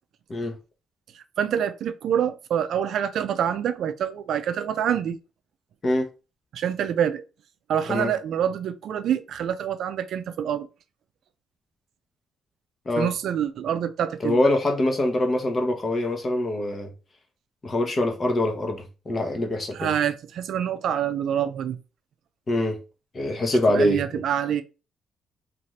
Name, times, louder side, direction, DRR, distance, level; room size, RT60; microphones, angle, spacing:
voice 1, 1.1-5.2 6.5-7.2 7.7-10.7 13.0-14.4 19.7-21.8 23.7-24.6, right 9 dB, 70° right, 0.4 m, -26 dB
voice 2, 14.2-16.9 17.6-19.9 22.5-22.8 23.1-24.2, left 1 dB, 35° left, 0.8 m, -24 dB
2.7 x 2.5 x 3.2 m
cardioid pair, 90°, 0 cm